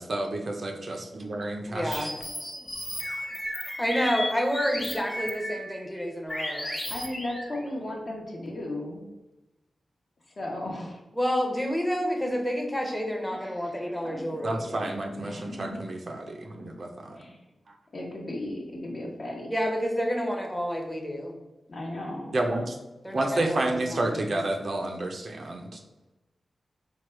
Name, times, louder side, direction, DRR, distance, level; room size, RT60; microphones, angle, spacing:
voice 1, 0.0-2.1 14.4-17.2 17.7-17.8 22.3-22.8 23.1-25.8, right 2 dB, 50° right, 3 dB, 0.5 m, -30 dB
voice 2, 1.7-2.1 3.8-6.7 11.2-14.6 19.5-21.4 23.0-24.4, equal, 5° left, 2 dB, 0.7 m, -29 dB
sound 1, 1.9-5.9 6.3-7.6, left 1 dB, 20° left, 1.0 m, -34 dB
voice 3, 6.9-9.1 10.3-11.0 13.3-15.8 17.1-17.4 17.9-19.5 21.7-22.4, left 1 dB, 45° left, -1 dB, 0.8 m, -36 dB
4.6 x 2.3 x 4.4 m, 1.0 s
wide cardioid pair, 135°, 0 cm